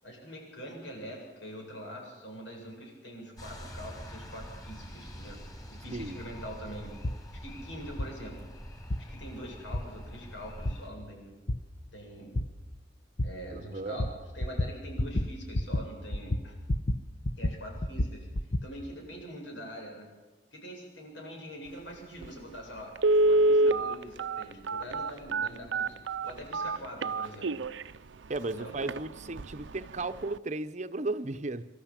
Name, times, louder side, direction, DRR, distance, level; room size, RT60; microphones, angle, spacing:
voice 1, 0.0-5.4 5.7-6.9 7.4-8.5 9.1-11.4 11.9-12.4 13.2-16.6 17.4-18.3 18.6-20.1 20.5-22.9 23.2-26.0 26.2-27.5 28.5-28.8, equal, 90° left, 7.8 m, -44 dB
sound 1, 3.4-10.9, equal, 20° left, 4.2 m, -45 dB
sound 2, 7.0-7.2 8.0-8.1 8.9-9.0 9.7-9.8 10.7-10.8 11.5-11.6 12.4-12.5 13.2-13.3 14.0-14.1 14.4-14.7 15.0-15.3 15.5-15.8 16.1-17.0 17.3-18.7, left 1 dB, 40° left, 0.9 m, -29 dB
voice 2, 13.5-14.0 28.3-31.7, right 2 dB, 40° right, 0.8 m, -35 dB
Telephone, 22.2-22.3 23.0-27.8 28.4-28.5 28.8-29.0 29.4-29.7 30.0-30.1, right 2 dB, 80° right, 0.6 m, -26 dB
25.0 x 13.0 x 8.8 m
head